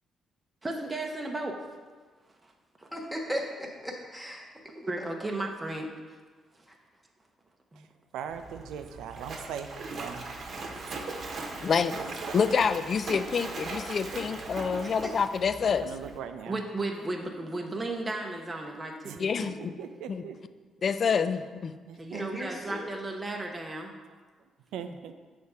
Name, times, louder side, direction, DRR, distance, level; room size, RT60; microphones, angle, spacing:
voice 1, 0.6-1.6 2.4-2.5 2.8-2.9 4.8-5.9 6.5-6.6 7.7-7.9 16.5-19.6 22.0-23.9, right 2 dB, 20° right, 1 dB, 0.7 m, -35 dB
voice 2, 2.9-4.8 14.8-15.1 22.1-22.9, equal, ahead, -1 dB, 1.3 m, -37 dB
voice 3, 8.1-10.3 10.9-11.0 12.0-12.4 15.6-16.6 19.0-20.4 21.9-22.4 24.7-25.1, right 8 dB, 85° right, 8 dB, 0.4 m, -40 dB
Splash splatter, 8.3-16.2, right 3 dB, 55° right, 0.9 m, -39 dB
voice 4, 11.6-12.0 12.3-15.9 19.2-19.8 20.1-20.2 20.8-21.7, left 6 dB, 50° left, 12 dB, 0.3 m, -27 dB
6.6 x 3.5 x 5.4 m, 1.4 s
cardioid pair, 90°, 0 cm